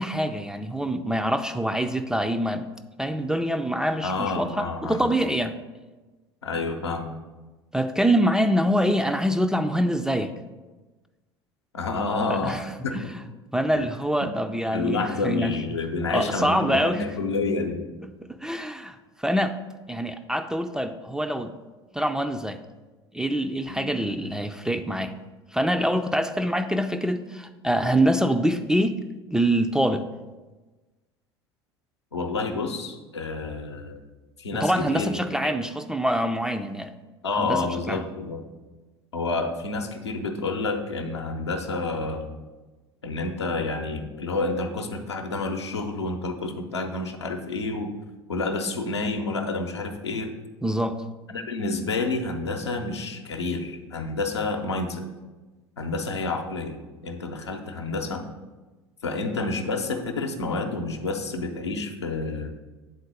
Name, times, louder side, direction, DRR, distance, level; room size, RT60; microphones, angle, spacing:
voice 1, 0.0-2.7 3.0-5.5 7.7-10.3 12.3-12.6 12.9-13.1 13.5-15.5 16.1-17.0 18.3-19.6 19.9-21.5 21.9-22.6 23.1-25.2 25.5-29.0 29.3-30.0 34.5-36.9 37.4-38.0 50.6-51.0, equal, 5° right, 8 dB, 0.3 m, -25 dB
voice 2, 4.0-5.1 6.4-7.1 11.7-13.0 13.7-13.8 14.2-14.3 14.7-17.9 23.7-23.9 32.1-34.0 34.4-35.5 37.2-38.4 39.1-42.3 43.0-47.9 48.3-50.3 51.3-55.0 55.8-58.2 59.0-62.5, left 3 dB, 80° left, 3 dB, 0.7 m, -29 dB
8.2 x 3.9 x 5.1 m, 1.2 s
figure-of-eight pair, 70°, 14 cm